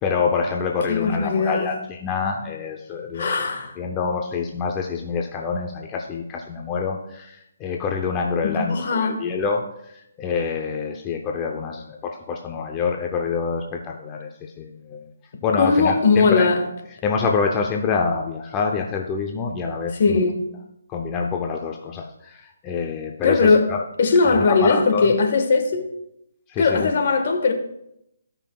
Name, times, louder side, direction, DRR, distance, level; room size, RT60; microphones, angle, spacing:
voice 1, 0.0-3.5 3.8-9.9 10.2-15.1 15.4-16.5 17.0-20.3 20.9-23.8 24.2-25.1 26.5-26.9, left 5 dB, 20° left, 0.6 m, -26 dB
voice 2, 0.9-1.7 3.1-3.8 8.4-9.3 15.6-16.6 19.9-20.5 23.2-23.7 24.0-25.9 26.6-27.5, left 4 dB, 55° left, 1.4 m, -19 dB
17.0 x 5.6 x 2.3 m
hypercardioid pair, 155°, 0 cm